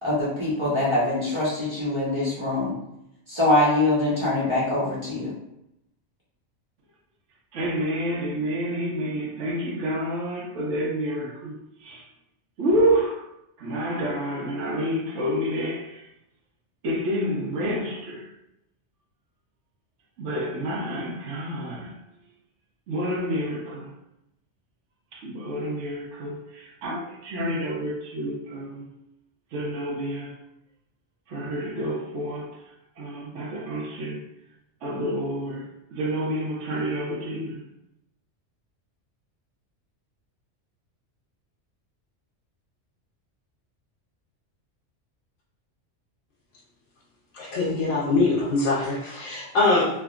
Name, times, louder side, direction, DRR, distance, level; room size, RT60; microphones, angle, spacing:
voice 1, 0.0-2.7 3.3-5.3, left 2 dB, 25° right, 0.8 m, -23 dB
voice 2, 7.5-11.6 11.8-12.0 12.6-13.2 13.6-16.0 16.8-18.3 20.2-22.0 22.9-23.9 25.1-28.9 29.5-30.4 31.3-32.6 33.0-34.2 34.8-37.6, equal, 75° right, 1.0 m, -28 dB
voice 3, 47.3-49.9, left 3 dB, 75° left, 1.0 m, -23 dB
3.5 x 2.1 x 2.3 m
omnidirectional pair, 1.2 m